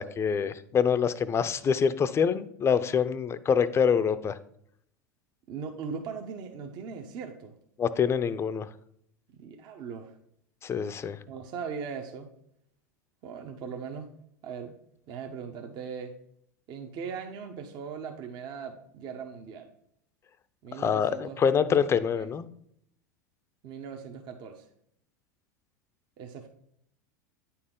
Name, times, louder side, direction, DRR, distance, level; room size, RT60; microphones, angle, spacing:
voice 1, 0.0-4.4 7.8-8.7 10.6-11.2 20.8-22.4, left 7 dB, 25° left, 14 dB, 0.5 m, -25 dB
voice 2, 5.5-7.5 9.4-10.1 11.3-12.3 13.2-14.1 14.4-14.7 15.1-16.1 16.7-19.7 20.6-21.4 22.2-22.3 23.6-24.6 26.2-26.5, right 6 dB, 50° right, 3 dB, 0.9 m, -39 dB
9.1 x 4.3 x 3.7 m, 0.71 s
hypercardioid pair, 90°, 10 cm